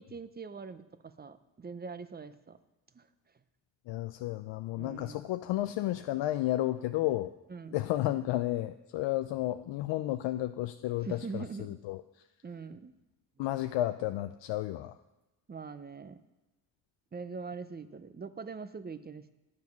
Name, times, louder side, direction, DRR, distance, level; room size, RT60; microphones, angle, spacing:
voice 1, 0.0-2.6 2.9-3.1 4.8-5.2 7.5-7.8 11.0-11.8 12.4-12.9 15.5-16.2 17.1-19.3, right 4 dB, 20° right, 12 dB, 0.6 m, -42 dB
voice 2, 3.9-7.3 7.7-12.3 13.4-15.0, left 15 dB, 75° left, 9 dB, 0.5 m, -32 dB
9.7 x 7.2 x 5.9 m, 1.0 s
cardioid pair, 90°, 45 cm